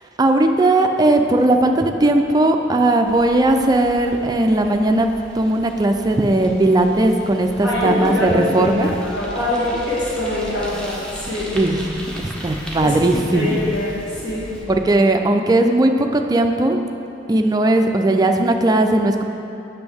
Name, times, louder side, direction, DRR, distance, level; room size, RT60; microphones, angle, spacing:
voice 1, 0.2-8.9 11.5-11.8 12.2-13.6 14.7-16.8 17.3-19.2, right 2 dB, 20° right, 5 dB, 0.3 m, -17 dB
Bicycle, 3.0-14.7, equal, 5° left, 0.8 m, -38 dB
voice 2, 7.6-11.5 12.8-14.5, left 1 dB, 60° left, -8 dB, 1.5 m, -24 dB
sound 1, 8.8-14.8, left 1 dB, 30° left, 0.6 m, -40 dB
7.9 x 6.1 x 3.5 m, 2.9 s
head